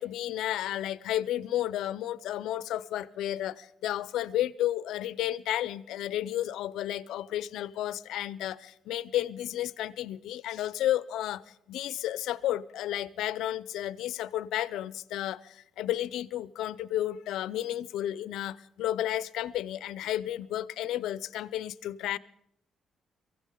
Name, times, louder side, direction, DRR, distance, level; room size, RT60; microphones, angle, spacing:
voice 1, 0.0-22.2, left 13 dB, 85° left, 0.5 m, -32 dB
23.5 x 15.5 x 3.8 m
cardioid pair, 90°, 0 cm